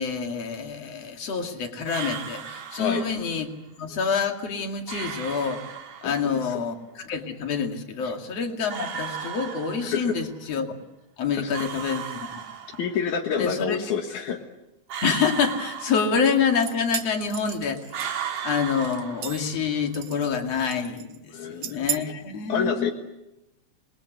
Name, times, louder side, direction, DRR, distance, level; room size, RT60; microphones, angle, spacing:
voice 1, 0.0-3.5 3.8-5.6 6.0-10.7 11.2-12.3 13.4-13.8 15.0-18.0 18.4-22.9, left 6 dB, 60° left, 4 dB, 3.3 m, -27 dB
sound 1, 1.9-3.4 4.9-6.4 8.7-10.2 11.5-13.1 14.9-16.6 17.9-19.8, right 8 dB, 90° right, 3.6 m, -35 dB
voice 2, 6.0-6.6 8.0-8.1 9.8-10.2 11.3-11.5 12.8-14.4 18.2-18.3 21.3-21.9 22.5-22.9, left 7 dB, 80° left, 3 dB, 2.9 m, -28 dB
sound 2, 16.3-18.4 18.8-19.6 19.9-20.4 20.7-21.2 21.6-22.0, right 12 dB, 70° right, 2.4 m, -34 dB
27.5 x 21.0 x 8.1 m, 0.93 s
omnidirectional pair, 3.4 m